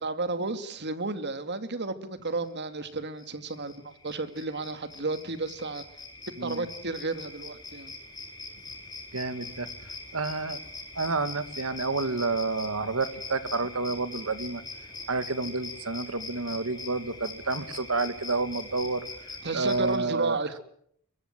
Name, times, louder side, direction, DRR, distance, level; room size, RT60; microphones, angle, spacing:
voice 1, 0.0-5.9 6.4-7.9 19.4-20.6, right 3 dB, 55° right, 11 dB, 2.4 m, -33 dB
sound 1, 2.8-2.9 3.2-20.0, left 3 dB, 20° left, 7.9 m, -42 dB
voice 2, 9.1-9.7 10.1-10.6 11.0-14.6 15.1-19.1 19.5-20.4, right 3 dB, 70° right, 12 dB, 2.3 m, -29 dB
24.0 x 22.5 x 7.7 m, 0.66 s
head